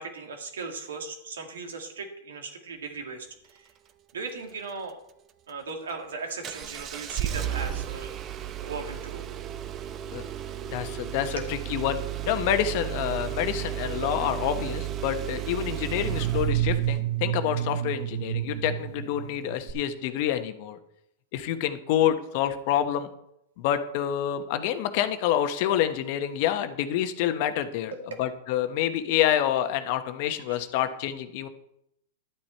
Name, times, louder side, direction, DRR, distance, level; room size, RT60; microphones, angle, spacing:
voice 1, 0.0-3.7 4.1-5.0 5.5-8.1 8.6-9.2 11.4-11.5 14.0-14.3 27.9-28.0 30.5-30.6, right 4 dB, 90° right, 3 dB, 2.2 m, -38 dB
Engine starting, 6.4-17.0 19.7-19.8, right 11 dB, 30° right, 0.8 m, -34 dB
voice 2, 10.7-12.0 12.3-20.8 21.3-23.1 23.6-27.9 28.2-31.5, left 11 dB, 55° left, 9 dB, 1.1 m, -27 dB
sound 1, 15.8-19.9, right 13 dB, 65° right, 0.5 m, -29 dB
11.5 x 8.9 x 4.5 m, 0.80 s
hypercardioid pair, 130°, 0 cm